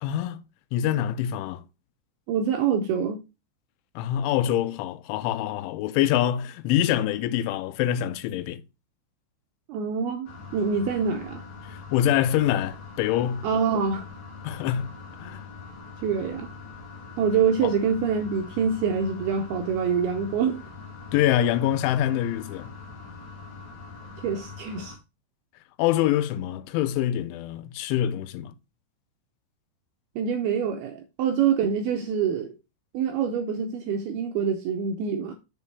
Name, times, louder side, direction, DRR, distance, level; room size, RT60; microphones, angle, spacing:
voice 1, 0.0-0.4 0.7-1.6 4.0-8.6 11.7-13.5 14.4-14.9 15.2-15.5 17.6-17.7 21.1-22.7 25.8-28.5, left 11 dB, 90° left, 3.1 m, -25 dB
voice 2, 2.3-3.2 9.7-11.4 13.4-14.1 16.0-16.5 17.2-20.6 24.2-25.0 30.2-32.5 32.9-35.3, right 6 dB, 80° right, 2.3 m, -25 dB
sound 1, 10.2-25.0, left 4 dB, 50° left, 2.4 m, -43 dB
6.8 x 5.4 x 4.6 m
omnidirectional pair, 5.3 m